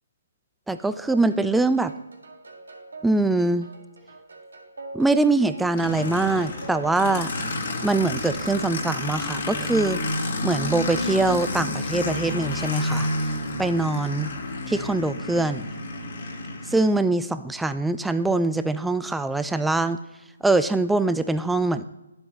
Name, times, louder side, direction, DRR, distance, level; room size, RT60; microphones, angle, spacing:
voice 1, 0.7-1.9 3.0-3.7 4.9-7.3 7.8-10.0 10.4-13.1 13.6-14.3 14.7-15.7 16.7-20.0 20.4-21.9, right 2 dB, 5° right, 11 dB, 0.3 m, -23 dB
sound 1, 1.1-8.5, right 2 dB, 80° right, 2.0 m, -44 dB
Aircraft, 5.8-16.9, left 1 dB, 45° left, 1.8 m, -30 dB
11.5 x 7.8 x 3.2 m, 0.97 s
hypercardioid pair, 150°, 0 cm